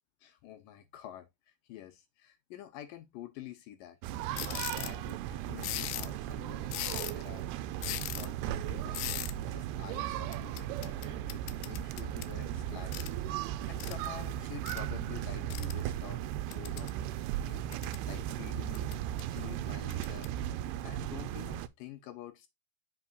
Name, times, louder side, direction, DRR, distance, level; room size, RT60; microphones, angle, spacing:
voice 1, 0.2-4.0 4.4-9.0 9.5-13.1 13.7-16.2 16.5-16.9 17.3-17.7 18.1-18.9 19.3-20.3 20.8-22.5, left 12 dB, 75° left, 2.1 m, -48 dB
sound 1, 4.0-21.7, right 12 dB, 85° right, 2.6 m, -36 dB
sound 2, 4.4-5.0 5.6-6.2 6.7-7.3 7.8-8.3 8.9-9.3 10.3-12.3 12.9-13.1 13.8-13.9 14.7-14.8 15.5-15.7 16.5-17.0 17.5-18.0 18.7-19.2 19.9-20.3, left 15 dB, 90° left, 2.7 m, -39 dB
7.6 x 6.0 x 2.4 m
omnidirectional pair, 4.6 m